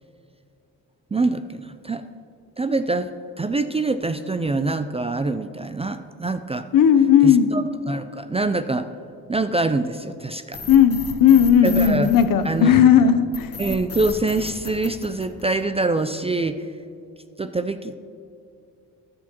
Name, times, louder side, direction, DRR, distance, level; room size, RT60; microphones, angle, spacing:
voice 1, 1.1-2.0 2.6-3.1 3.4-6.7 7.2-8.9 9.3-10.6 11.6-12.1 12.4-12.9 13.6-16.7 17.4-18.0, right 3 dB, 20° right, 10 dB, 0.3 m, -25 dB
voice 2, 6.7-7.5 10.7-13.5, left 8 dB, 65° left, 10 dB, 0.7 m, -15 dB
sound 1, 10.5-12.8 13.3-15.8, left 4 dB, 40° left, 1.4 m, -34 dB
17.5 x 6.3 x 2.9 m, 2.6 s
cardioid pair, 75°, 36 cm